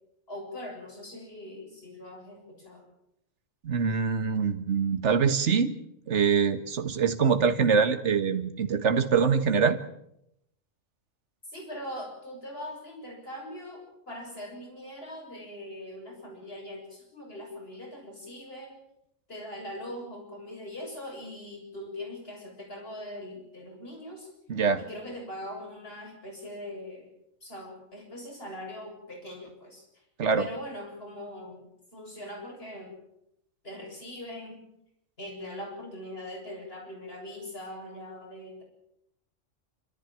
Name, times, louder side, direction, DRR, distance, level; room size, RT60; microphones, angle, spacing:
voice 1, 0.3-2.9 11.5-18.8 19.3-24.3 24.8-27.1 27.4-29.8 30.4-31.7 31.9-32.9 33.6-34.6 35.2-38.6, left 1 dB, 50° left, 0 dB, 7.6 m, -41 dB
voice 2, 3.6-5.8 6.1-9.8 24.5-24.8 30.2-30.5, right 6 dB, 60° right, 7 dB, 1.8 m, -24 dB
27.5 x 14.0 x 9.0 m, 0.80 s
omnidirectional pair, 1.3 m